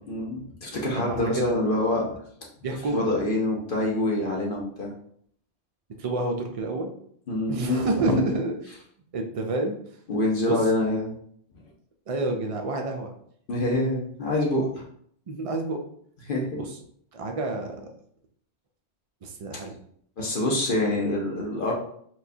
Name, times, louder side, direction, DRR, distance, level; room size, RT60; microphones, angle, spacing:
voice 1, 0.0-2.1 2.9-4.9 7.3-8.4 10.1-11.1 13.5-14.8 16.3-16.6 19.5-19.6 20.2-21.7, left 1 dB, 55° left, -2 dB, 0.9 m, -26 dB
voice 2, 1.0-1.5 2.6-3.1 6.0-6.9 7.5-8.5 9.1-9.8 10.4-10.6 12.1-13.1 15.3-15.8 16.5-16.7 17.1-17.8 19.2-19.7, right 2 dB, 70° right, 3 dB, 0.3 m, -28 dB
4.4 x 2.2 x 2.6 m, 0.64 s
omnidirectional pair, 1.1 m